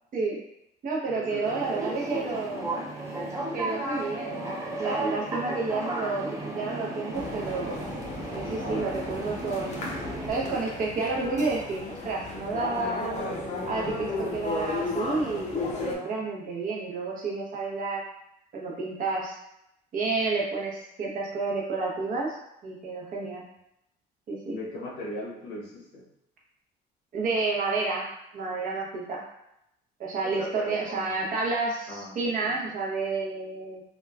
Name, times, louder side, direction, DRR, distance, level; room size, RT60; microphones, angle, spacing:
voice 1, 0.1-0.4 0.8-2.7 3.5-4.4 4.8-7.8 8.3-9.9 10.3-13.2 13.7-18.1 18.5-19.4 19.9-22.4 22.6-23.4 24.3-24.6 27.1-29.2 30.0-33.8, right 3 dB, 55° right, -3 dB, 0.8 m, -30 dB
voice 2, 1.1-2.4 3.6-3.7 5.4-5.6 8.6-9.1 24.5-26.0 30.2-31.4 31.9-32.5, left 1 dB, 85° left, -3 dB, 0.9 m, -39 dB
sound 1, 1.4-10.3, right 1 dB, 20° right, 0.5 m, -34 dB
sound 2, 7.1-16.0, left 3 dB, 45° left, 0.5 m, -35 dB
2.9 x 2.2 x 2.3 m, 0.80 s
cardioid pair, 110°, 17 cm